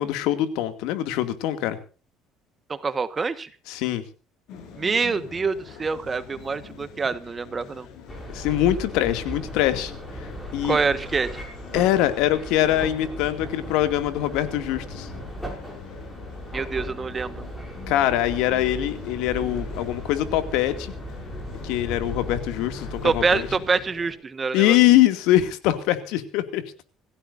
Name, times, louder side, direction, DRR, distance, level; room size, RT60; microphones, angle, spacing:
voice 1, 0.0-1.8 3.7-4.0 8.3-10.8 11.7-15.1 17.9-20.9 21.6-23.5 24.5-26.6, left 13 dB, 80° left, 9 dB, 2.5 m, -23 dB
voice 2, 2.7-3.5 4.8-7.9 10.6-11.3 16.5-17.4 23.0-24.8, right 4 dB, 25° right, 12 dB, 1.5 m, -25 dB
sound 1, 4.5-24.1, left 6 dB, 65° left, 7.1 m, -44 dB
sound 2, 8.1-23.6, equal, 5° left, 6.7 m, -37 dB
26.5 x 16.0 x 2.7 m, 0.36 s
cardioid pair, 140°, 0 cm